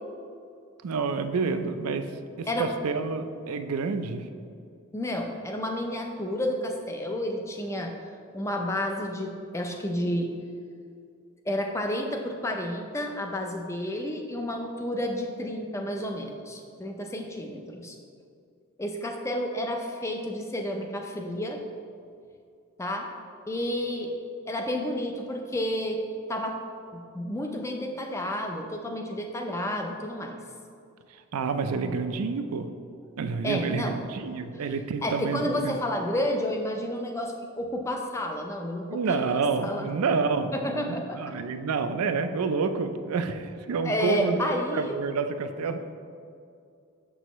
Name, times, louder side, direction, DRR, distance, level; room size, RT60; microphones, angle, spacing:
voice 1, 0.8-2.1 2.4-4.3 31.3-32.7 33.2-35.8 38.9-44.4 44.7-45.9, right 4 dB, 85° right, 8 dB, 0.4 m, -28 dB
voice 2, 4.9-7.9 8.3-10.3 11.5-18.0 18.8-21.6 22.8-23.1 23.5-24.1 24.5-26.0 26.3-26.6 26.9-30.4 33.4-34.0 34.5-34.6 35.0-39.2 39.6-39.9 40.5-41.2 43.8-45.0, left 1 dB, 15° left, 3 dB, 0.4 m, -30 dB
6.6 x 6.2 x 3.0 m, 2.4 s
head